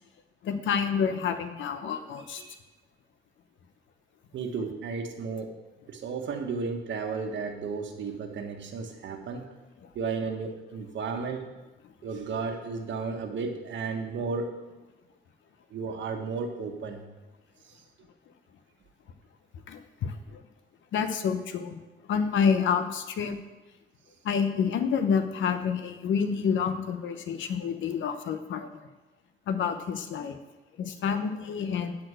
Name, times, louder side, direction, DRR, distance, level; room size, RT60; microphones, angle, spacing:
voice 1, 0.4-2.4 19.7-20.4 20.9-21.8 22.1-23.4 24.2-28.9 29.5-30.4 30.8-32.0, left 6 dB, 75° left, 9 dB, 0.9 m, -28 dB
voice 2, 4.3-5.5 5.9-9.5 9.9-11.5 12.0-14.5 15.7-17.0 17.6-17.7, right 4 dB, 70° right, 4 dB, 1.4 m, -33 dB
9.7 x 4.4 x 7.6 m, 1.1 s
cardioid pair, 90°, 20 cm